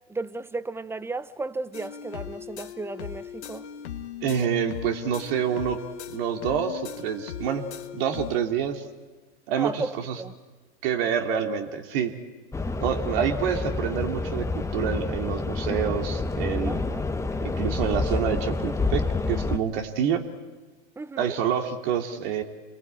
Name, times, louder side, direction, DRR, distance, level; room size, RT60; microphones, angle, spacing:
voice 1, 0.1-3.6 9.6-10.3 13.1-13.5 16.7-17.0 21.0-21.3, right 3 dB, 5° right, 0.8 m, -34 dB
sound 1, 1.7-8.4, left 10 dB, 75° left, 1.8 m, -38 dB
voice 2, 4.2-5.8 6.1-7.7 7.9-8.8 9.5-10.2 10.8-12.1 12.8-16.8 17.6-20.2 21.2-22.4, right 8 dB, 60° right, 2.7 m, -27 dB
sound 2, 12.5-19.6, left 3 dB, 10° left, 1.2 m, -28 dB
28.0 x 21.5 x 8.9 m
hypercardioid pair, 95°, 33 cm